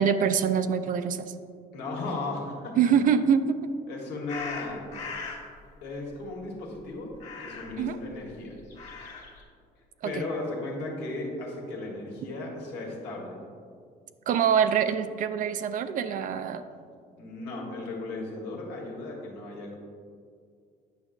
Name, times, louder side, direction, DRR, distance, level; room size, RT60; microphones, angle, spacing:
voice 1, 0.0-1.3 2.8-3.4 7.8-8.0 10.0-10.2 14.3-16.6, right 7 dB, 55° right, 10 dB, 0.4 m, -24 dB
voice 2, 1.7-2.9 3.9-4.9 5.8-7.1 7.4-8.6 10.0-13.4 17.2-19.8, left 2 dB, 85° left, -1 dB, 1.5 m, -36 dB
sound 1, 4.3-5.5 7.2-7.8 8.6-9.4, left 4 dB, 45° left, 1.5 m, -39 dB
9.0 x 6.1 x 2.6 m, 2.2 s
cardioid pair, 110°, 17 cm